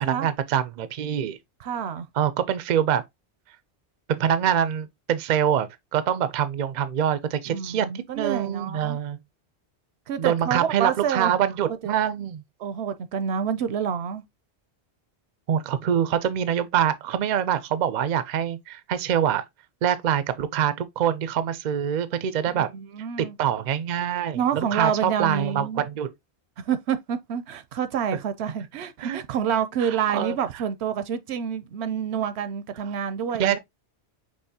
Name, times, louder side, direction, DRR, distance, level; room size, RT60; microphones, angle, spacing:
voice 1, 0.0-1.4 2.2-3.0 4.1-7.9 8.2-9.2 10.2-12.4 15.5-19.4 19.8-22.7 23.2-26.1 29.0-29.2 29.8-30.4 33.4-33.6, right 9 dB, 55° right, 0.5 m, -25 dB
voice 2, 1.6-2.1 7.5-9.0 10.1-11.3 11.8-11.9 12.6-14.2 22.5-23.4 24.3-25.9 26.6-33.6, right 8 dB, 80° right, 0.8 m, -28 dB
5.5 x 3.2 x 2.7 m
omnidirectional pair, 1.1 m